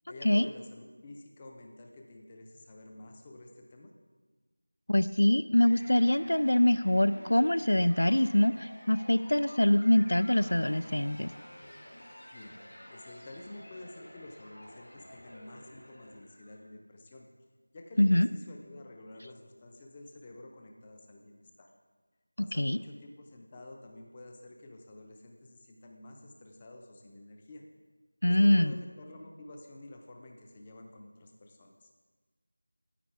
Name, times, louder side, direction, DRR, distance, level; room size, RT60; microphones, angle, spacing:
voice 1, 0.1-3.9 12.3-12.5 12.9-17.3 17.7-21.7 22.4-27.6 28.3-31.9, left 1 dB, 15° left, 2 dB, 0.6 m, -49 dB
voice 2, 4.9-11.3 18.0-18.3 22.5-22.8 28.2-28.7, left 1 dB, 75° left, 14 dB, 0.3 m, -24 dB
sound 1, 5.6-16.7, equal, 55° left, 2.4 m, -51 dB
9.8 x 8.2 x 4.7 m, 1.4 s
figure-of-eight pair, 175°, 0 cm